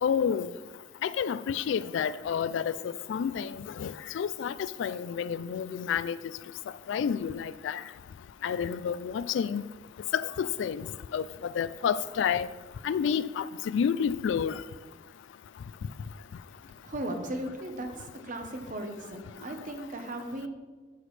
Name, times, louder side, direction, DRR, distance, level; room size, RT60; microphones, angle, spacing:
voice 1, 0.0-0.5 1.0-2.7 3.1-3.5 3.8-4.5 4.8-6.2 6.9-7.8 8.4-9.6 10.1-10.8 11.1-11.2 11.6-12.5 12.8-14.5, left 7 dB, 70° left, 0.3 m, -29 dB
voice 2, 16.8-20.5, right 1 dB, 40° right, 0.9 m, -37 dB
11.5 x 6.1 x 3.2 m
head